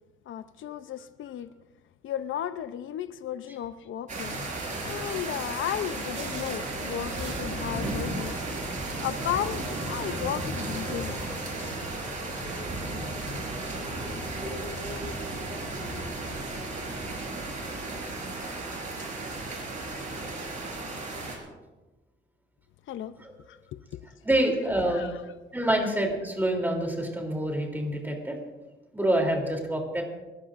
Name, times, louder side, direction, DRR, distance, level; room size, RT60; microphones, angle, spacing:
voice 1, 0.3-1.5 2.0-4.4 4.8-8.4 9.0-11.2 14.5-14.9 22.9-23.2 23.5-24.1 24.9-25.2, left 10 dB, 75° left, 12 dB, 0.6 m, -34 dB
Rain and Thunder, 4.1-21.4, right 2 dB, 40° right, 4.3 m, -34 dB
sound 1, 5.8-17.4, left 3 dB, 55° left, 3.3 m, -47 dB
sound 2, 5.8-10.1 10.4-10.9, right 5 dB, 75° right, 5.8 m, -49 dB
voice 2, 24.2-25.1 25.5-28.4 28.9-30.0, right 1 dB, 10° right, 1 dB, 3.1 m, -27 dB
28.5 x 13.5 x 2.5 m, 1.2 s
cardioid pair, 125°, 20 cm